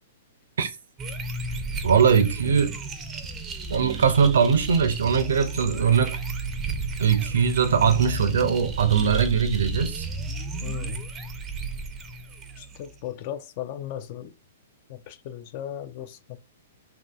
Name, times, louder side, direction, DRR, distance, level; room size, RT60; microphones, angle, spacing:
sound 1, 1.0-13.0, right 4 dB, 20° right, 0.4 m, -33 dB
voice 1, 1.8-2.7 3.7-6.2 7.0-10.1, right 6 dB, 80° right, 0.5 m, -21 dB
voice 2, 10.6-11.0 12.6-14.3 14.9-16.4, left 11 dB, 45° left, 0.4 m, -36 dB
3.0 x 2.6 x 2.3 m
hypercardioid pair, 135°, 0 cm